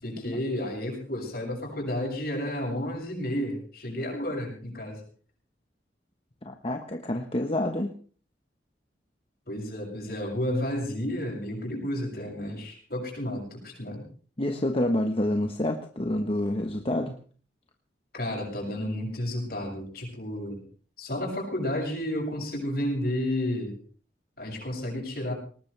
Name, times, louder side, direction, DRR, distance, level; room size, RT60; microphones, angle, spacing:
voice 1, 0.0-5.0 9.5-14.0 18.1-20.6 21.0-23.7 24.4-25.3, left 1 dB, 60° left, 1 dB, 7.1 m, -31 dB
voice 2, 6.4-7.9 14.4-17.1, left 1 dB, 30° left, 4 dB, 1.2 m, -28 dB
19.5 x 19.5 x 3.4 m, 0.42 s
head